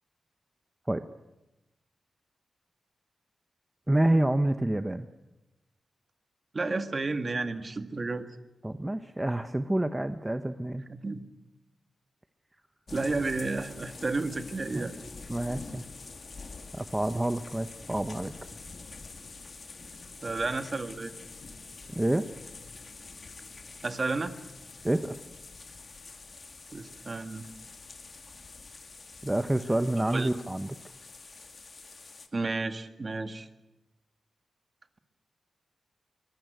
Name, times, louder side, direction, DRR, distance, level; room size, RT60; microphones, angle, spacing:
voice 1, 3.9-5.1 8.6-10.8 14.7-14.9 15.3-15.9 16.7-18.3 22.0-22.3 24.8-25.2 29.2-30.8, right 1 dB, 15° right, 10 dB, 0.8 m, -28 dB
voice 2, 6.5-8.3 10.9-11.2 12.9-14.9 20.2-21.1 23.8-24.3 26.7-27.5 30.1-30.3 32.3-33.5, right 3 dB, 35° right, 9 dB, 1.8 m, -31 dB
sound 1, 12.9-32.3, left 3 dB, 45° left, 2.3 m, -46 dB
23.5 x 20.0 x 9.2 m, 1.0 s
wide cardioid pair, 100°, 0 cm